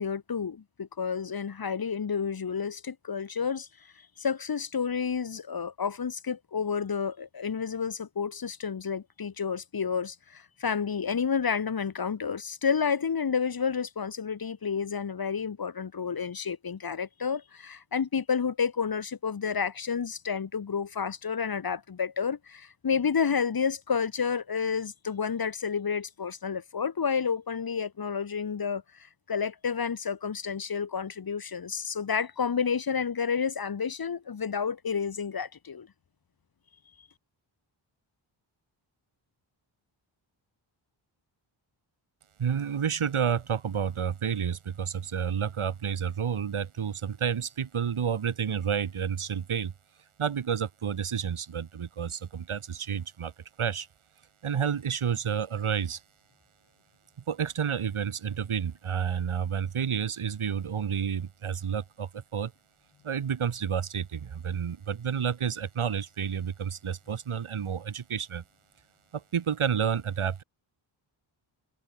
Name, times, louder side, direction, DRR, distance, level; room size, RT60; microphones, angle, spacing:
voice 1, 0.0-3.7 4.2-35.9, left 6 dB, 45° left, 1.4 m, -30 dB
voice 2, 42.4-49.7 50.2-53.3 53.6-53.9 54.4-56.0 57.3-62.5 63.0-68.4 69.1-70.4, right 7 dB, 80° right, 3.5 m, -30 dB
wide cardioid pair, 100°, 49 cm